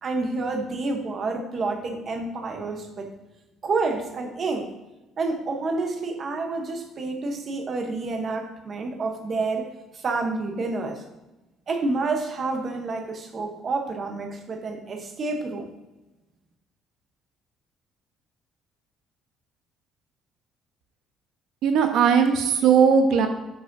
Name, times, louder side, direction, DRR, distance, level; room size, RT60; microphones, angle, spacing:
voice 1, 0.0-3.1 3.6-4.7 5.2-11.0 11.7-15.7, right 3 dB, 35° right, 4 dB, 0.8 m, -29 dB
voice 2, 21.6-23.3, right 6 dB, 70° right, 6 dB, 0.8 m, -18 dB
9.9 x 4.8 x 2.6 m, 1.0 s
cardioid pair, 160°, 0 cm